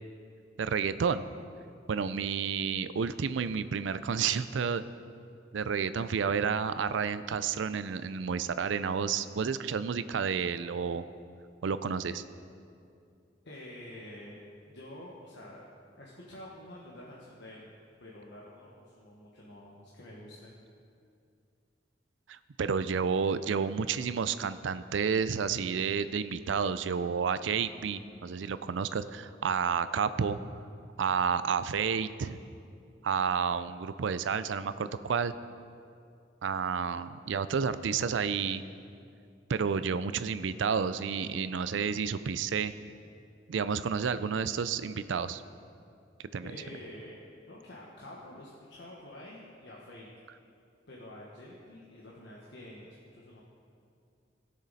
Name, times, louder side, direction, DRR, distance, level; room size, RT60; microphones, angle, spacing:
voice 1, 0.6-1.3 1.9-4.8 5.5-11.0 11.6-12.2 22.3-30.4 31.0-32.4 33.0-35.3 36.4-38.6 39.5-42.7 43.5-45.4 46.3-46.5, right 6 dB, 85° right, 13 dB, 0.4 m, -30 dB
voice 2, 13.4-14.4 14.7-15.6 16.0-17.7 18.0-20.5 46.4-47.2 47.5-50.1 50.9-53.4, left 1 dB, 65° left, -5 dB, 1.3 m, -48 dB
19.0 x 6.5 x 4.1 m, 2.4 s
head